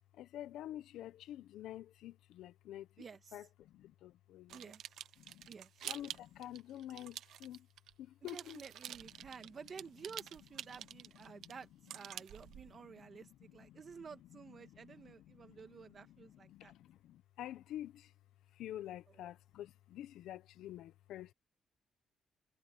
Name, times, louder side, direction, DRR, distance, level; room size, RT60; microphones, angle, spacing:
voice 1, 0.1-3.0 3.3-4.6 5.2-5.5 5.8-7.7 8.0-9.5 10.7-11.6 12.1-18.1 18.5-21.3, left 12 dB, 85° left, 0.9 m, -50 dB
voice 2, 3.0-3.4 4.5-5.0 5.5-5.8 8.3-16.7 19.1-19.3, right 6 dB, 45° right, 1.7 m, -52 dB
sound 1, 4.5-7.9 8.3-12.8, right 11 dB, 75° right, 0.9 m, -48 dB
cardioid pair, 90°, 0 cm